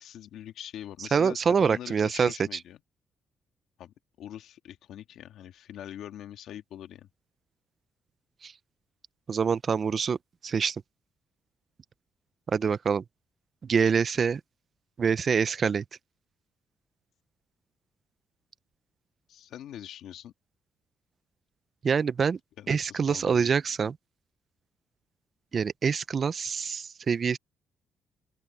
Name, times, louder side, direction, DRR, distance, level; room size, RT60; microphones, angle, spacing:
voice 1, 0.0-2.8 3.8-7.1 19.3-20.3 22.6-23.5, left 11 dB, 80° left, 1.9 m, -43 dB
voice 2, 1.1-2.6 8.4-8.5 9.3-10.2 10.4-10.8 12.5-13.0 13.6-14.4 15.0-15.8 21.8-22.4 22.7-24.0 25.5-27.4, right 6 dB, 45° right, 0.6 m, -25 dB
open air
cardioid pair, 90°, 0 cm